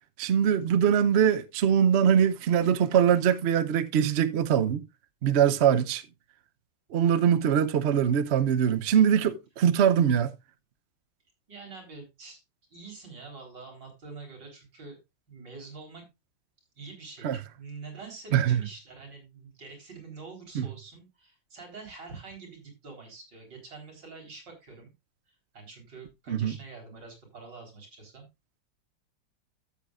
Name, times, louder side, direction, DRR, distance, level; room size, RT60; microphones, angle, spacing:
voice 1, 0.2-4.8 5.2-6.0 6.9-10.3 17.2-17.4 18.3-18.6 20.5-20.7 26.3-26.5, right 8 dB, 60° right, 0.7 m, -23 dB
voice 2, 11.5-12.4 12.7-15.0 15.3-16.0 16.8-24.9 25.3-28.2, right 4 dB, 80° right, 4.6 m, -46 dB
13.0 x 8.2 x 2.4 m
omnidirectional pair, 1.9 m